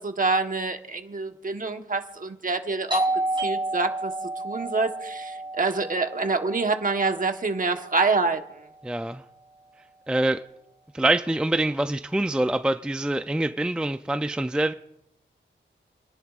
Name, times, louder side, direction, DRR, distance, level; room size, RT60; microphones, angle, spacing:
voice 1, 0.0-3.0 3.4-4.1 4.4-8.4, right 3 dB, 40° right, 6 dB, 1.2 m, -26 dB
Doorbell, 2.9-8.3, right 2 dB, 25° right, 4.1 m, -31 dB
voice 2, 8.8-9.2 10.1-10.4 10.9-14.7, right 1 dB, 5° right, 9 dB, 0.4 m, -25 dB
29.0 x 10.5 x 2.4 m, 0.84 s
wide cardioid pair, 95°, 20 cm